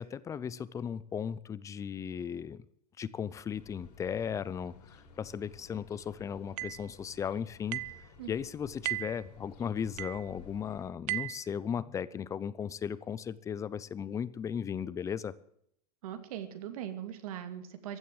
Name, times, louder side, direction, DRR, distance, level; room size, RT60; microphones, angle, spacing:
voice 1, 0.0-2.6 3.0-7.8 8.3-15.3, left 7 dB, 15° left, 18 dB, 0.6 m, -36 dB
sound 1, 3.5-10.9, left 4 dB, 90° left, 6.3 m, -54 dB
sound 2, 6.6-6.8 7.7-8.0 8.9-9.2 10.0-10.3 11.1-11.5, right 26 dB, 35° right, 0.6 m, -35 dB
voice 2, 16.0-18.0, right 10 dB, 65° right, 8 dB, 2.6 m, -40 dB
15.5 x 11.0 x 7.9 m, 0.71 s
supercardioid pair, 145°, 20 cm